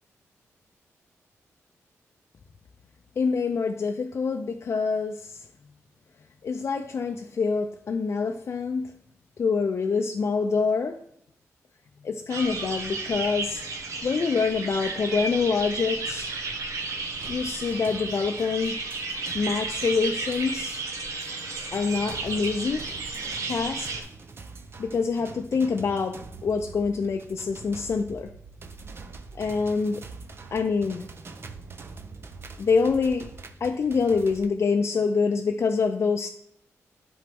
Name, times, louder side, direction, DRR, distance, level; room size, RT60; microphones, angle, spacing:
voice 1, 3.2-5.5 6.4-8.9 9.4-11.0 12.0-13.6 14.0-16.4 17.3-18.8 19.3-20.8 21.7-22.9 23.4-23.9 24.8-28.3 29.3-30.0 30.5-31.1 32.6-33.3 33.6-36.3, left 5 dB, 55° left, 4 dB, 0.5 m, -26 dB
sound 1, 12.3-24.0, right 3 dB, 75° right, 1.2 m, -33 dB
sound 2, 17.2-34.5, right 4 dB, 45° right, 0.7 m, -45 dB
11.0 x 3.9 x 3.5 m, 0.73 s
cardioid pair, 85°, 6 cm